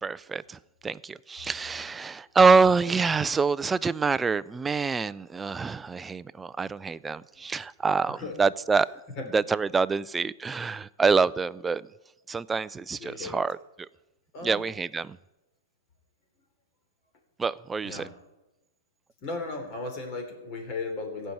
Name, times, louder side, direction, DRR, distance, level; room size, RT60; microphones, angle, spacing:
voice 1, 0.0-8.9 9.3-11.8 12.3-13.6 14.4-15.2 17.4-18.1, right 4 dB, 10° right, 17 dB, 0.3 m, -26 dB
voice 2, 13.0-13.4 14.3-14.6 17.8-18.1 19.2-21.3, left 3 dB, 40° left, 3 dB, 3.5 m, -36 dB
15.5 x 5.4 x 9.2 m, 1.0 s
hypercardioid pair, 145°, 0 cm